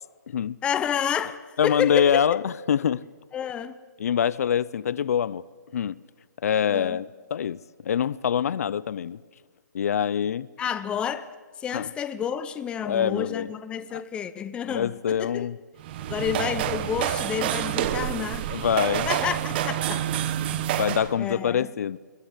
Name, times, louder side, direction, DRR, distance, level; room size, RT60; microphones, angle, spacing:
voice 1, 0.6-2.4 3.3-3.8 6.7-7.0 10.6-11.3 11.6-15.5 16.1-18.5 19.1-20.1 20.5-20.6 21.2-21.7, left 8 dB, 10° left, 0.7 m, -30 dB
voice 2, 1.6-3.0 4.0-5.4 5.7-6.0 6.4-9.2 9.7-10.5 11.7-11.9 12.8-13.5 13.9-14.0 14.7-15.6 18.5-19.1 20.8-22.0, left 8 dB, 55° left, 0.6 m, -25 dB
sound 1, 15.8-21.1, right 11 dB, 30° right, 1.2 m, -28 dB
22.0 x 22.0 x 8.2 m
hypercardioid pair, 155°, 10 cm